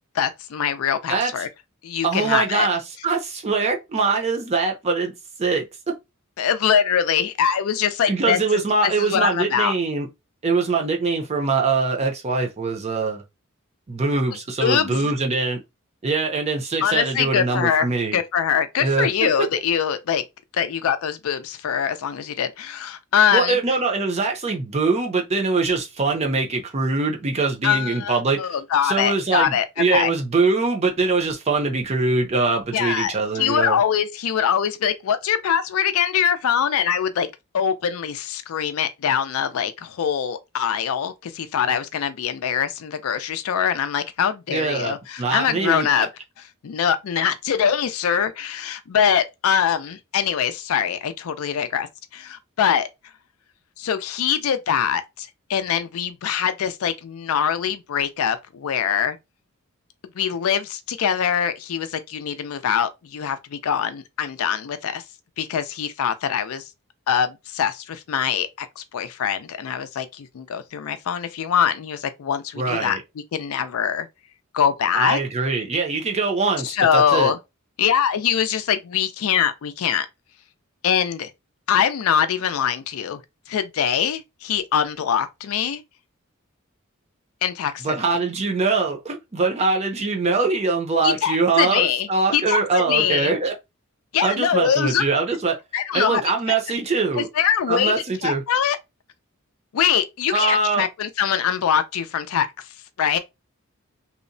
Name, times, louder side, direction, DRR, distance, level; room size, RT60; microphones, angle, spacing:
voice 1, 0.2-1.5 1.8-2.7 6.4-9.7 14.6-15.0 16.8-20.2 20.5-23.6 27.6-30.1 32.7-37.3 37.5-46.1 46.6-51.9 52.1-52.9 53.8-59.2 60.2-65.0 65.4-66.6 67.1-73.0 73.3-74.1 74.5-75.2 76.6-77.4 77.8-80.1 80.8-81.3 81.7-83.2 83.5-85.8 87.4-87.9 91.0-93.3 94.1-95.0 95.7-96.2 96.5-96.6 97.2-97.9 98.2-98.8 99.7-102.5 103.0-103.2, left 8 dB, 75° left, 0.4 m, -23 dB
voice 2, 2.0-5.1 5.4-5.9 8.1-10.1 10.4-13.2 13.9-15.6 16.0-18.2 18.8-19.3 23.3-28.5 28.8-33.8 44.5-46.0 72.6-73.0 74.9-77.3 87.8-93.5 94.2-95.6 95.9-97.3 97.7-98.4 100.3-100.9, right 4 dB, 30° right, 0.5 m, -23 dB
2.8 x 2.0 x 2.6 m
head